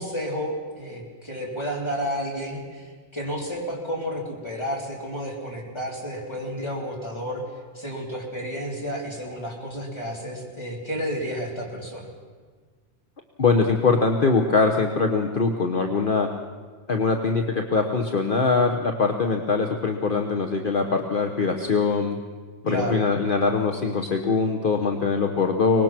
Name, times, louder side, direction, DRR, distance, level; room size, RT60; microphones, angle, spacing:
voice 1, 0.0-7.4 7.7-12.1 22.7-23.1, equal, 20° left, -2 dB, 3.9 m, -31 dB
voice 2, 13.4-16.3 16.9-22.2 22.6-25.8, left 4 dB, 45° left, 4 dB, 1.2 m, -22 dB
24.0 x 19.5 x 6.1 m, 1.5 s
omnidirectional pair, 1.2 m